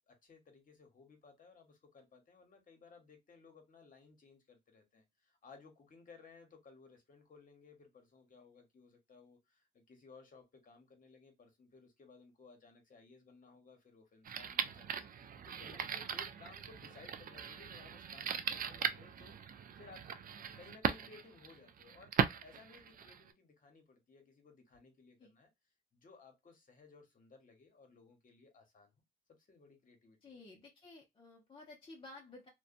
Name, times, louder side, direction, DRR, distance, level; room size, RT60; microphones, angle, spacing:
voice 1, 0.1-19.3 19.7-22.1 22.4-25.5 25.9-29.0 29.4-30.4, left 4 dB, 40° left, 1.1 m, -60 dB
sound 1, 14.2-23.3, right 7 dB, 45° right, 0.4 m, -39 dB
voice 2, 15.6-15.9 25.2-25.3 30.2-32.5, left 2 dB, 25° left, 0.6 m, -54 dB
2.6 x 2.2 x 2.5 m
cardioid pair, 90°, 20 cm